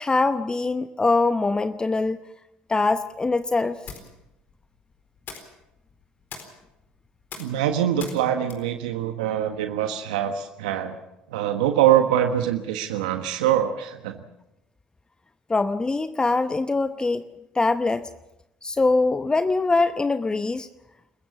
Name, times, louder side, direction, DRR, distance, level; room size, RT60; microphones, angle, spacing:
voice 1, 0.0-2.2 2.7-3.8 15.5-17.2 17.5-18.1 18.6-20.7, left 3 dB, 20° left, 12 dB, 0.8 m, -23 dB
sound 1, 2.7-9.9, left 6 dB, 55° left, 4.2 m, -45 dB
voice 2, 7.4-11.0 11.3-14.2, right 10 dB, 90° right, 6 dB, 1.3 m, -23 dB
27.5 x 15.0 x 7.2 m, 0.89 s
hypercardioid pair, 70°, 4 cm